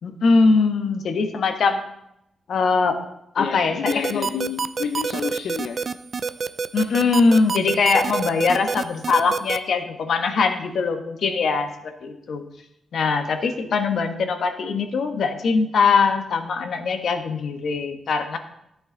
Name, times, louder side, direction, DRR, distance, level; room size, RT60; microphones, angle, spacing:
voice 1, 0.0-1.8 2.5-3.0 3.3-4.2 6.7-12.4 12.9-18.4, left 4 dB, 60° left, 7 dB, 1.2 m, -21 dB
voice 2, 3.4-5.8, left 7 dB, 85° left, 6 dB, 0.6 m, -29 dB
sound 1, 3.9-9.6, right 5 dB, 35° right, 0.4 m, -26 dB
14.0 x 8.7 x 3.9 m, 0.80 s
wide cardioid pair, 170°, 0 cm